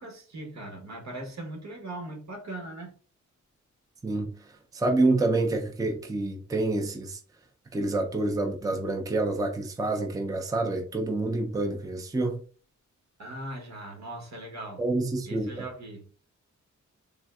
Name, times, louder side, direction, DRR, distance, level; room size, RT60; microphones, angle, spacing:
voice 1, 0.0-3.0 13.2-14.8 15.3-16.1, right 1 dB, 60° right, 1.0 m, -39 dB
voice 2, 4.7-7.2 7.7-12.4 14.8-15.5, right 2 dB, 10° right, 0.4 m, -27 dB
3.4 x 2.5 x 2.3 m
wide cardioid pair, 115°, 30 cm